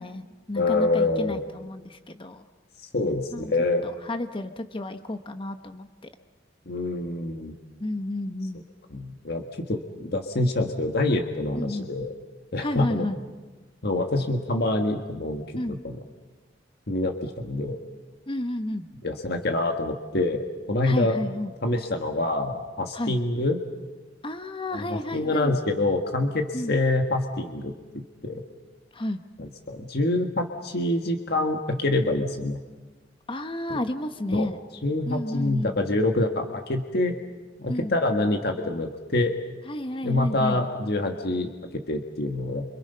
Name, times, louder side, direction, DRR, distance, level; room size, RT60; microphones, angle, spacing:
voice 1, 0.0-2.4 3.3-3.5 3.8-6.1 7.8-8.6 11.5-11.9 12.6-13.2 15.5-15.8 18.3-18.9 20.8-21.5 22.9-23.2 24.2-25.5 26.5-26.8 28.9-29.2 33.3-34.6 35.1-35.7 37.7-37.9 39.6-40.6, left 1 dB, 30° left, 8 dB, 1.1 m, -31 dB
voice 2, 0.6-1.4 2.9-3.8 6.7-7.5 8.9-12.1 12.5-13.1 13.8-16.0 16.9-17.8 19.0-20.4 20.7-21.2 21.6-23.6 24.7-27.7 28.2-28.4 29.4-32.6 34.3-34.5 34.8-37.1 37.6-39.3 40.0-42.7, left 2 dB, 60° left, 4 dB, 1.7 m, -26 dB
29.5 x 26.5 x 5.6 m, 1.3 s
head